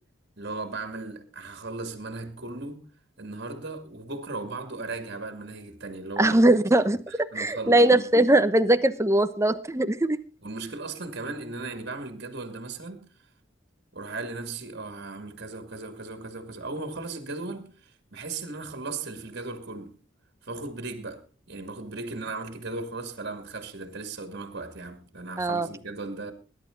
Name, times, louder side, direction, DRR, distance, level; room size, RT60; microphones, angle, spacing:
voice 1, 0.4-2.9 3.2-8.1 10.4-13.1 13.9-20.0 20.4-26.3, right 3 dB, 55° right, 2.4 m, -37 dB
voice 2, 6.2-7.0 7.4-10.2 25.4-25.7, right 1 dB, 15° right, 0.9 m, -20 dB
20.0 x 11.0 x 3.9 m
head